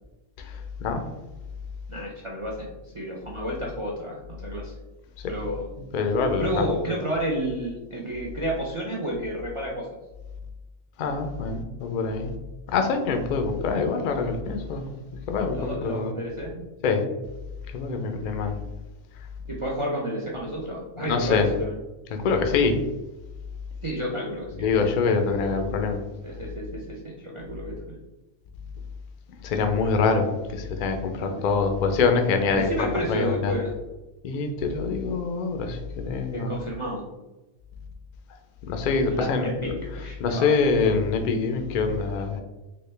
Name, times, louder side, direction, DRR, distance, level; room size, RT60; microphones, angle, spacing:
voice 1, 0.4-1.0 5.2-5.3 5.8-6.7 11.0-12.3 12.7-14.9 15.3-16.1 16.8-17.0 17.7-18.6 21.0-21.5 22.1-22.8 24.6-26.0 29.4-33.5 34.2-36.5 38.6-39.7 40.2-42.4, left 4 dB, 65° left, 5 dB, 0.4 m, -25 dB
voice 2, 1.9-4.8 5.3-5.7 6.4-9.9 15.5-16.6 19.5-21.7 23.8-24.7 26.2-28.0 31.2-31.5 32.5-33.7 36.3-37.0 39.1-40.6, equal, 55° right, -3 dB, 0.3 m, -31 dB
4.1 x 2.2 x 3.2 m, 1.1 s
omnidirectional pair, 1.3 m